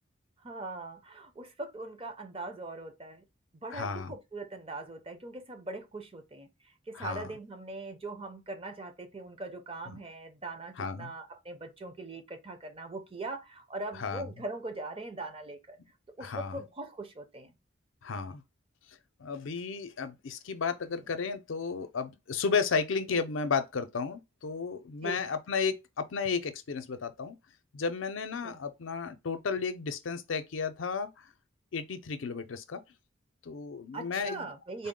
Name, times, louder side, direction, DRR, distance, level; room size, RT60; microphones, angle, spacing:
voice 1, 0.4-3.2 3.6-15.8 16.2-17.5 23.1-23.2 25.0-25.2 28.4-28.6 33.9-34.9, right 2 dB, 30° right, 0.6 m, -41 dB
voice 2, 3.7-4.1 6.9-7.3 9.9-10.0 10.8-11.1 14.0-14.3 16.2-16.6 18.0-18.4 19.2-27.4 27.7-31.3 31.7-32.8 33.4-34.5, left 5 dB, 85° left, 0.5 m, -33 dB
3.9 x 2.1 x 3.7 m
head